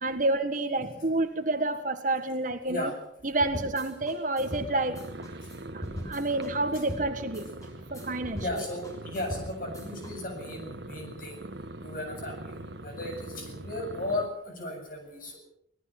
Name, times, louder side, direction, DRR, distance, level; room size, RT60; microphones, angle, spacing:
voice 1, 0.0-2.9 3.2-5.3 5.7-7.5 7.9-8.6, right 2 dB, 40° right, 8 dB, 1.6 m, -29 dB
sound 1, 3.4-10.1, equal, 15° left, 6.4 m, -40 dB
sound 2, 4.4-14.3, right 1 dB, 60° right, 1.5 m, -42 dB
voice 2, 8.4-11.3 11.8-12.3 12.8-14.3 14.6-15.4, left 1 dB, 45° left, 3 dB, 7.7 m, -35 dB
25.5 x 18.5 x 6.0 m, 0.70 s
head